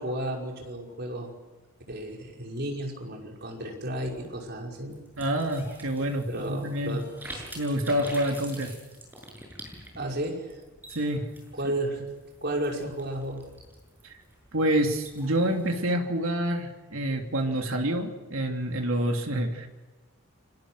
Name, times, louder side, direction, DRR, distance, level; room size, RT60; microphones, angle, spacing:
voice 1, 0.0-1.3 1.9-5.0 6.2-7.0 7.3-7.4 9.9-10.5 11.6-12.0 12.4-13.5, right 1 dB, 50° right, 1 dB, 5.6 m, -33 dB
sound 1, 3.9-15.8, right 1 dB, 10° right, 7.1 m, -47 dB
voice 2, 5.2-7.0 7.5-8.8 10.9-11.3 14.0-14.2 14.5-19.7, right 1 dB, 70° right, 3 dB, 3.1 m, -27 dB
29.5 x 25.0 x 6.5 m, 1.2 s
head